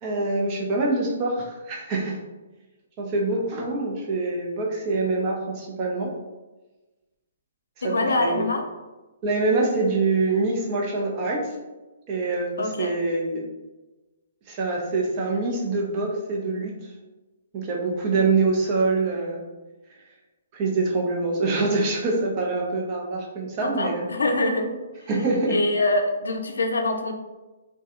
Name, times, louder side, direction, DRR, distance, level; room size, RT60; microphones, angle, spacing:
voice 1, 0.0-2.2 3.0-6.2 7.8-8.5 9.2-11.6 12.1-13.4 14.5-16.9 17.5-19.4 20.5-24.1 25.1-25.6, right 3 dB, 35° right, -1 dB, 0.6 m, -25 dB
voice 2, 7.8-8.6 12.6-12.9 23.6-24.7 25.5-27.1, left 2 dB, 80° left, 4 dB, 0.4 m, -24 dB
2.3 x 2.2 x 2.8 m, 1.1 s
hypercardioid pair, 135°, 0 cm